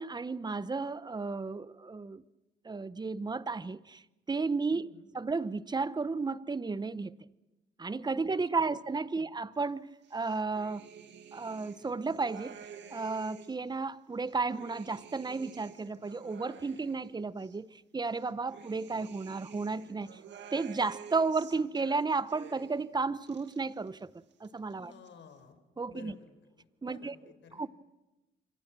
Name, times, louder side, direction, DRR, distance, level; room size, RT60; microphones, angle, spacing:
voice 1, 0.0-2.2 2.6-4.0 4.3-7.2 7.8-10.9 11.3-12.6 12.9-20.2 20.5-24.1 24.4-24.9 25.8-26.1 26.8-27.1 27.6-27.7, right 4 dB, 20° right, 0.9 m, -33 dB
voice 2, 4.7-5.2 8.2-8.3 8.6-8.8 9.1-9.2 24.7-25.6 25.9-27.7, left 6 dB, 70° left, 4.5 m, -54 dB
sound 1, 10.0-13.7 14.1-17.6 18.0-22.9 23.1-24.0 24.3-25.1, right 7 dB, 65° right, 2.1 m, -51 dB
27.0 x 25.0 x 6.2 m
cardioid pair, 90°, 20 cm